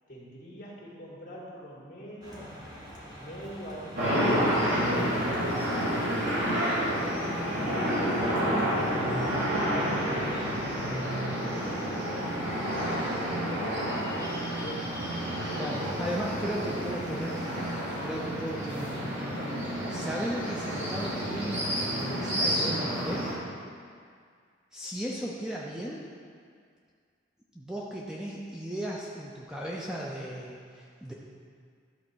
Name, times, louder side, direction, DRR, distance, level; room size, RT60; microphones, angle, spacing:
voice 1, 0.1-2.6 3.2-7.1 7.9-13.4 14.1-14.9 19.5-20.3, equal, 45° left, -5 dB, 2.3 m, -45 dB
sound 1, 2.2-18.2, equal, 20° right, 1.6 m, -45 dB
sound 2, 4.0-23.3, equal, 70° right, 2.7 m, -29 dB
voice 2, 15.5-17.4 18.0-18.9 19.9-23.3 24.7-26.0 27.5-31.1, right 1 dB, 5° right, -4 dB, 0.6 m, -36 dB
13.0 x 4.4 x 6.2 m, 2.1 s
head